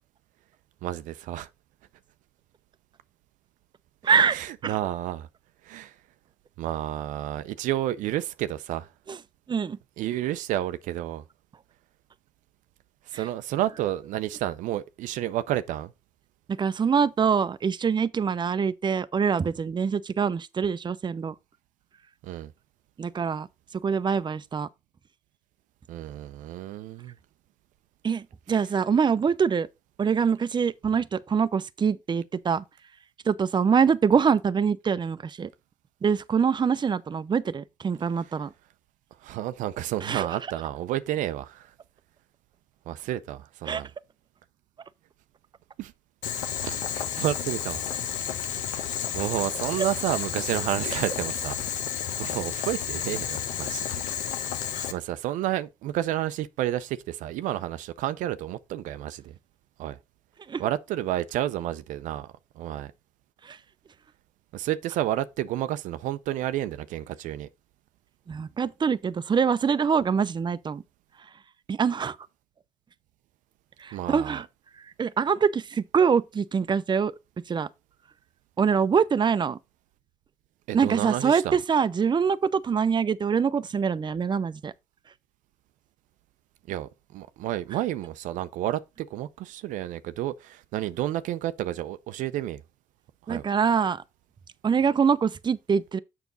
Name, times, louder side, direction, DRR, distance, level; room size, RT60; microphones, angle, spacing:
voice 1, 0.8-1.5 4.3-5.3 5.6-6.0 6.6-8.9 10.0-11.2 13.0-15.9 22.2-22.5 25.9-27.2 38.2-38.3 39.2-41.7 42.9-43.9 45.8-45.9 46.6-47.8 48.2-54.0 54.5-59.4 59.8-60.0 60.6-62.9 64.5-67.5 73.9-74.4 80.7-81.6 86.7-92.6 93.2-93.5, right 13 dB, 75° right, 0.5 m, -31 dB
voice 2, 4.0-4.4 4.6-4.7 9.1-9.2 9.5-9.8 16.5-21.3 23.0-23.5 23.7-24.7 28.0-29.7 30.0-32.6 33.3-35.5 36.0-38.5 40.0-40.3 43.7-43.8 54.7-54.9 60.5-60.6 63.4-63.6 68.3-70.8 71.7-72.2 73.8-74.4 74.8-77.1 77.5-77.7 78.6-79.6 80.7-84.7 93.3-94.0 94.6-96.0, right 6 dB, 35° right, 0.6 m, -24 dB
Boiling, 46.2-54.9, left 9 dB, 80° left, 1.0 m, -31 dB
7.1 x 5.8 x 3.9 m
supercardioid pair, 60°, 13 cm